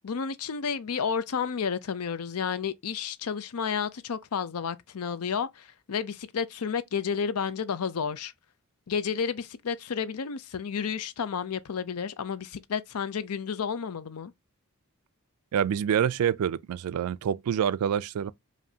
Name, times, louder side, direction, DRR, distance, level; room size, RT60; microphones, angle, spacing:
voice 1, 0.0-8.3 8.9-14.3, left 6 dB, 85° left, 0.5 m, -31 dB
voice 2, 15.5-18.3, right 8 dB, 80° right, 0.3 m, -26 dB
5.0 x 2.7 x 2.7 m
head